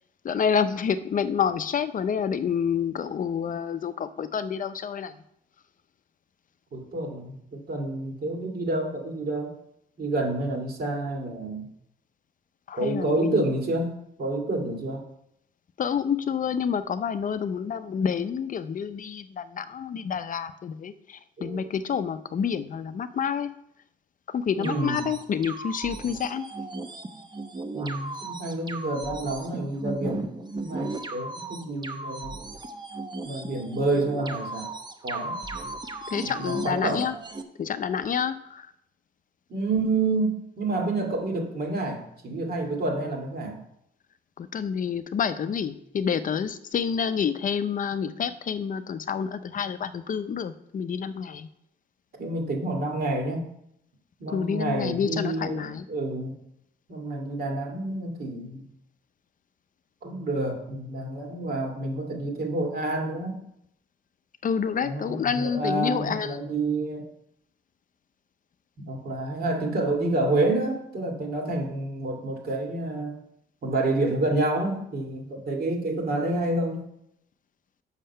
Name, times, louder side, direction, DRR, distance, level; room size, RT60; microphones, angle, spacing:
voice 1, 0.2-5.1 12.7-13.4 15.8-23.5 24.3-26.5 36.1-37.1 37.6-38.7 44.4-51.5 54.3-55.8 64.4-66.4, left 7 dB, 40° left, 13 dB, 0.6 m, -28 dB
voice 2, 6.7-9.5 10.0-11.7 12.7-15.0 21.4-21.7 24.6-25.1 27.7-30.2 30.6-32.3 33.2-34.7 35.0-35.4 36.2-37.1 39.5-43.6 52.2-53.4 54.2-56.4 56.9-58.7 60.0-63.4 64.8-67.1 68.8-73.2 73.6-76.8, right 2 dB, 50° right, 1 dB, 2.1 m, -28 dB
sound 1, 24.6-37.4, right 2 dB, 20° right, 0.8 m, -36 dB
6.5 x 5.5 x 5.5 m, 0.77 s
cardioid pair, 90°, 20 cm